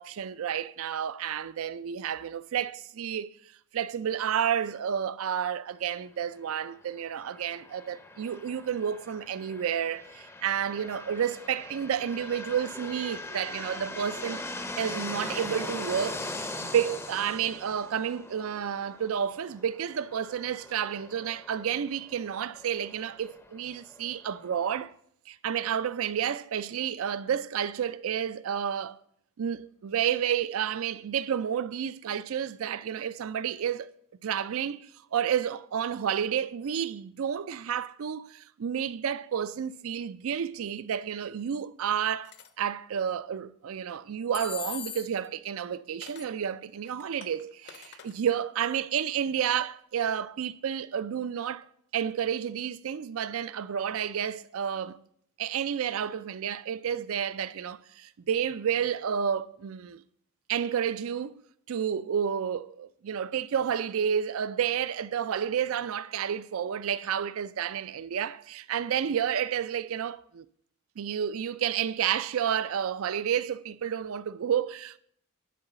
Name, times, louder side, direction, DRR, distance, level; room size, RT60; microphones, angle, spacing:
voice 1, 0.0-3.3 3.7-14.5 14.8-24.9 25.3-29.0 29.4-33.9 34.2-51.6 51.9-55.0 55.4-60.0 60.5-61.4 61.7-70.4 71.0-75.0, right 8 dB, 65° right, 0.4 m, -30 dB
sound 1, 7.2-24.8, left 2 dB, 10° left, 0.6 m, -41 dB
sound 2, 42.2-42.5 44.3-45.3 46.0-46.3 46.8-48.1, left 10 dB, 50° left, 0.7 m, -41 dB
11.0 x 4.0 x 6.7 m
head